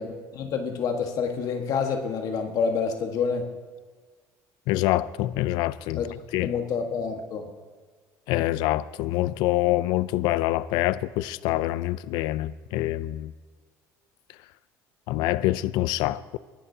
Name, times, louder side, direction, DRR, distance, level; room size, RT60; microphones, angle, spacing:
voice 1, 0.0-3.5 5.9-6.0 6.4-7.5, left 5 dB, 55° left, 1.4 m, -28 dB
voice 2, 4.7-6.0 6.3-6.5 8.3-13.3 15.1-16.4, left 16 dB, 75° left, 0.4 m, -25 dB
22.5 x 11.5 x 2.8 m
supercardioid pair, 100°, 7 cm